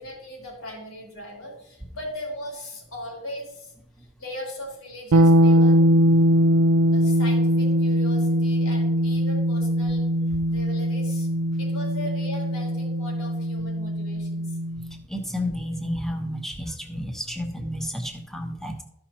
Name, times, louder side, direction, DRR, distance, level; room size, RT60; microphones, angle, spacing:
voice 1, 0.0-3.7 4.2-5.8 6.9-10.0 10.5-11.3 11.6-14.6, left 1 dB, 85° left, -3 dB, 3.8 m, -38 dB
sound 1, 5.1-14.9, equal, 70° right, 0.5 m, -21 dB
voice 2, 15.1-18.8, left 1 dB, ahead, 2 dB, 1.3 m, -31 dB
14.0 x 5.7 x 3.0 m, 0.76 s
head